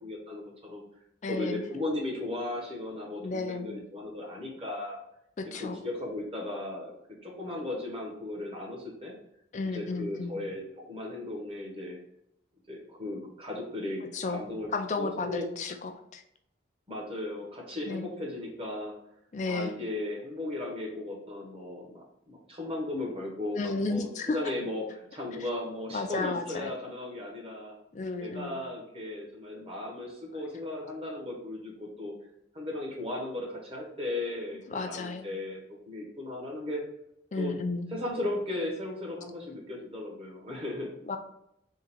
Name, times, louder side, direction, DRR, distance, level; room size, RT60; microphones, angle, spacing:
voice 1, 0.0-0.8 1.3-5.0 5.4-7.0 7.2-9.1 9.7-12.0 12.7-14.0 14.3-14.7 15.0-15.5 16.9-19.0 19.4-27.7 28.2-32.1 32.5-36.8 37.4-37.6 37.9-40.9, left 2 dB, 30° right, -2 dB, 1.0 m, -36 dB
voice 2, 1.2-1.7 3.2-3.8 5.4-5.8 9.5-10.4 14.1-14.4 14.7-16.2 17.9-18.1 19.3-19.7 23.6-24.5 25.9-26.7 27.9-28.6 34.7-35.3 37.3-37.9 41.1-41.2, left 3 dB, 40° left, 7 dB, 0.4 m, -33 dB
3.7 x 2.3 x 4.4 m, 0.77 s
head